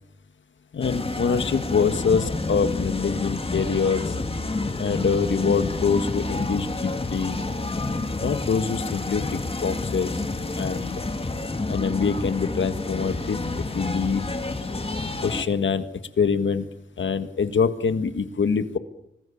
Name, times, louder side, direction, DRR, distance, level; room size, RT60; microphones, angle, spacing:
voice 1, 0.7-4.1 4.8-7.4 8.2-10.1 10.5-11.0 11.7-14.3 15.2-15.9 16.2-16.7 17.0-18.8, left 5 dB, 80° left, 10 dB, 1.7 m, -24 dB
sound 1, 0.8-15.4, left 2 dB, 30° left, 2.2 m, -29 dB
26.0 x 20.0 x 7.2 m, 0.81 s
wide cardioid pair, 100°, 19 cm